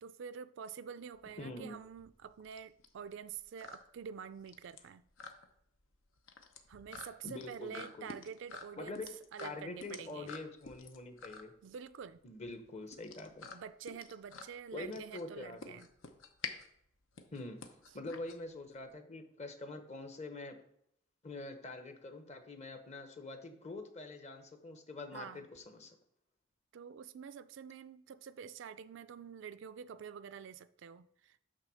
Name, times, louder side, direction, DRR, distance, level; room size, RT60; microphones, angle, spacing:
voice 1, 0.0-5.0 6.7-9.0 9.3-10.3 11.6-12.2 13.5-15.9 25.1-25.5 26.7-31.4, right 7 dB, 65° right, 0.4 m, -47 dB
sound 1, 1.1-18.9, left 4 dB, 85° left, 0.9 m, -50 dB
voice 2, 1.4-1.8 7.2-8.1 8.8-9.1 9.4-11.5 12.2-13.5 14.7-15.8 17.3-17.6 17.9-20.6 21.2-26.0, left 2 dB, 35° left, 1.0 m, -45 dB
8.9 x 3.6 x 6.3 m
head